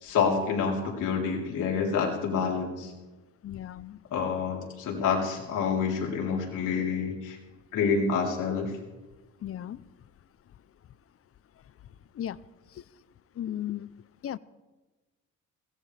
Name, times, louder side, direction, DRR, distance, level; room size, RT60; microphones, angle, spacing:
voice 1, 0.0-2.9 4.1-7.4 7.7-8.7, left 5 dB, 80° left, -1 dB, 3.7 m, -28 dB
voice 2, 3.4-4.0 9.4-9.8 12.2-12.4 13.4-13.9 14.2-14.4, left 11 dB, 50° left, 19 dB, 0.6 m, -35 dB
21.5 x 17.5 x 3.4 m, 1.2 s
cardioid pair, 90°, 30 cm